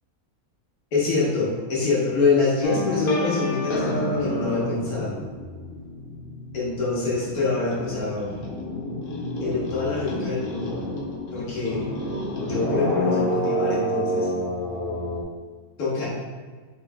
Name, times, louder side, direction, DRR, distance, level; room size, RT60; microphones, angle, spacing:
voice 1, 0.9-5.2 6.5-8.3 9.4-10.7 11.3-11.9 12.4-14.3 15.8-16.1, left 3 dB, 80° left, -6 dB, 1.7 m, -25 dB
sound 1, 2.6-6.7 7.0-15.2, left 1 dB, 55° left, 0.6 m, -29 dB
4.8 x 4.0 x 2.2 m, 1.5 s
omnidirectional pair, 1.6 m